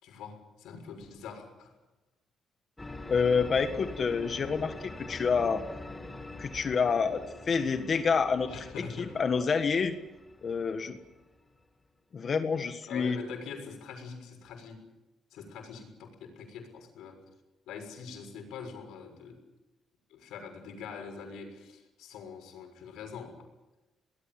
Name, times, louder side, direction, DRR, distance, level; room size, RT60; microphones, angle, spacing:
voice 1, 0.0-1.7 8.5-9.2 12.9-14.8 15.3-17.2 17.7-19.4 20.1-23.5, left 6 dB, 90° left, 4 dB, 6.4 m, -44 dB
sound 1, 2.8-11.6, left 2 dB, 15° left, 1.9 m, -44 dB
voice 2, 3.1-5.6 6.4-8.6 9.0-9.9 10.4-11.0 12.1-13.2, left 5 dB, 45° left, 8 dB, 1.6 m, -28 dB
25.0 x 20.0 x 7.7 m, 1.0 s
cardioid pair, 110°, 0 cm